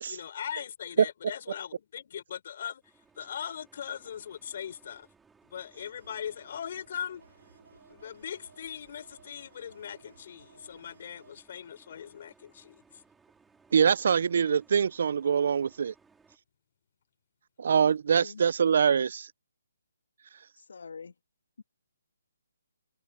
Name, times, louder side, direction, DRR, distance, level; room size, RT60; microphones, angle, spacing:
voice 1, 0.1-2.8 3.2-5.1 5.4-7.2 7.9-13.0, left 9 dB, 45° left, 4.4 m, -40 dB
sound 1, 2.8-16.4, right 5 dB, 5° right, 3.1 m, -64 dB
sound 2, 5.8-11.4, right 4 dB, 80° right, 5.2 m, -58 dB
voice 2, 13.7-15.9 17.6-19.3, right 7 dB, 55° right, 0.5 m, -24 dB
voice 3, 20.6-21.1 21.6-21.7, left 5 dB, 70° left, 2.8 m, -44 dB
hypercardioid pair, 160°, 0 cm